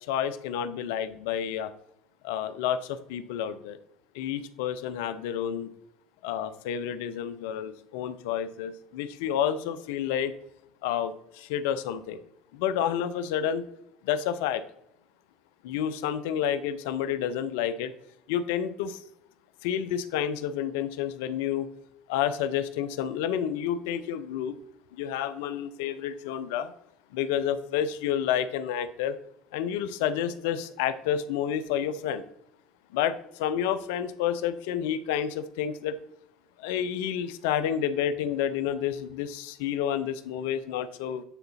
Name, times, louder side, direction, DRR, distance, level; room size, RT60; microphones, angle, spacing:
voice 1, 0.1-1.7 2.2-3.8 4.1-5.7 6.2-10.3 10.8-12.2 12.5-13.6 14.0-14.6 15.6-17.9 18.3-19.0 19.6-21.7 22.1-24.6 24.9-26.7 27.1-29.2 29.5-32.2 32.9-36.0 36.6-41.2, left 9 dB, 75° left, 12 dB, 0.5 m, -29 dB
9.1 x 3.9 x 4.2 m, 0.77 s
hypercardioid pair, 70°, 0 cm